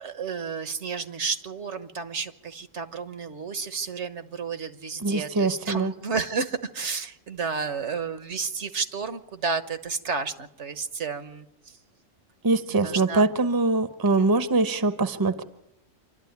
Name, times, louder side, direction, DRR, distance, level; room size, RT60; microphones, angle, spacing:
voice 1, 0.0-11.5 12.7-13.3 14.2-14.3, right 5 dB, 65° right, 10 dB, 1.5 m, -31 dB
voice 2, 5.0-5.9 12.4-15.4, right 3 dB, 20° right, 11 dB, 0.9 m, -23 dB
27.0 x 12.5 x 9.5 m, 0.89 s
omnidirectional pair, 1.3 m